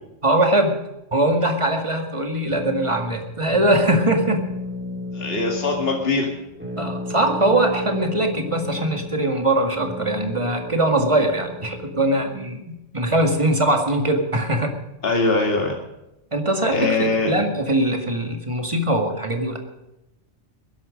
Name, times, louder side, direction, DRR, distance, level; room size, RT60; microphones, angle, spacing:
voice 1, 0.2-0.8 1.1-4.5 6.8-14.8 16.3-19.6, right 1 dB, 25° right, 4 dB, 2.0 m, -21 dB
sound 1, 2.5-12.4, left 2 dB, 10° right, 2.8 m, -33 dB
voice 2, 5.1-6.3 15.0-15.8 16.7-17.4, left 3 dB, 50° left, 0 dB, 2.4 m, -22 dB
20.5 x 11.5 x 5.2 m, 0.92 s
omnidirectional pair, 1.3 m